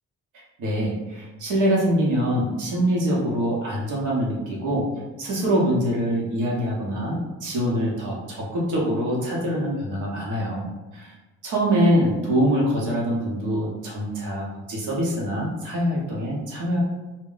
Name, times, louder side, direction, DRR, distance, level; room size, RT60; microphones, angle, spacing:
voice 1, 0.6-4.9 5.2-10.7 10.9-11.1 11.4-16.8, equal, 80° right, -3 dB, 1.0 m, -24 dB
2.3 x 2.1 x 3.8 m, 1.2 s
cardioid pair, 90°, 30 cm